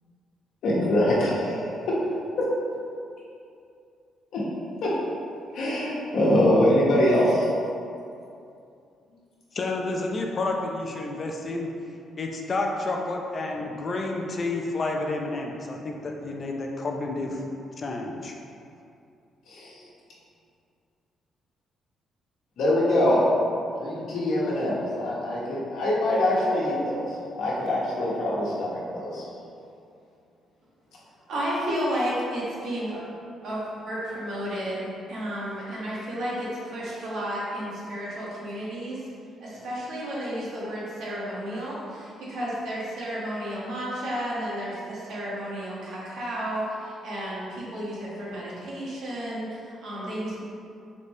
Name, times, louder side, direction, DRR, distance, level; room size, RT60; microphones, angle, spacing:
voice 1, 0.6-1.9 2.4-2.5 4.3-4.4 4.8-4.9 5.5-7.5 19.5-19.7 22.6-23.2 23.8-29.2, left 1 dB, 75° left, -6 dB, 1.1 m, -24 dB
voice 2, 9.5-11.7 12.2-17.4 17.8-18.4, left 2 dB, 40° left, 1 dB, 0.5 m, -30 dB
voice 3, 31.3-33.0 33.4-39.0 39.4-50.4, equal, 75° right, -7 dB, 1.4 m, -32 dB
3.9 x 3.0 x 3.6 m, 2.5 s
cardioid pair, 90°, 0 cm